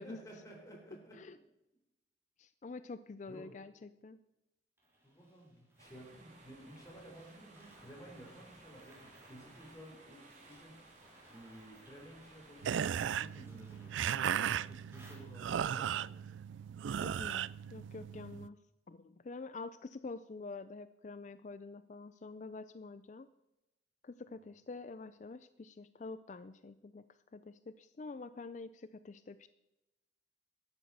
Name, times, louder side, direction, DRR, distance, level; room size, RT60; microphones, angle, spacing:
voice 1, 0.0-1.2 3.3-3.5 5.0-10.8 11.3-16.1, right 1 dB, 15° left, -1 dB, 3.8 m, -54 dB
voice 2, 2.4-4.2 17.0-18.6 18.9-23.3 24.0-27.0 27.3-29.5, left 3 dB, 40° left, 13 dB, 0.4 m, -47 dB
sound 1, 4.8-15.8, right 1 dB, 15° right, 3.2 m, -64 dB
sound 2, 5.8-13.2, right 2 dB, 40° right, 2.9 m, -59 dB
sound 3, 12.6-18.5, right 9 dB, 85° right, 0.3 m, -36 dB
12.5 x 8.7 x 6.6 m, 0.94 s
head